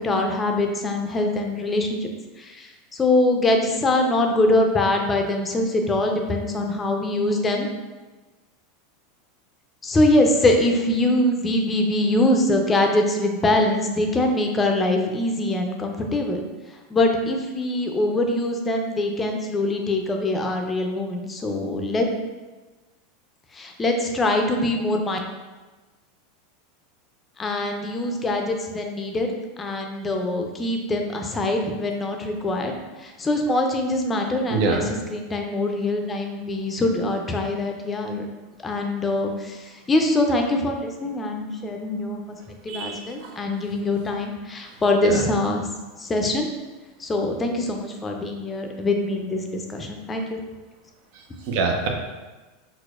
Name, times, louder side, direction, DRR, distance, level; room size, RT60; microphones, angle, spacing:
voice 1, 0.0-2.1 2.4-2.7 3.0-7.7 9.8-16.4 16.9-22.1 23.5-25.2 27.4-29.3 29.6-32.7 33.0-34.8 35.1-38.2 38.6-39.6 39.9-42.4 42.6-45.6 46.0-46.5 47.0-50.4, left 2 dB, 20° left, 3 dB, 0.5 m, -23 dB
voice 2, 34.5-34.8 42.7-43.4 45.0-45.2 51.1-51.9, right 4 dB, 55° right, 3 dB, 0.5 m, -25 dB
4.4 x 2.0 x 2.4 m, 1.2 s
hypercardioid pair, 90°, 0 cm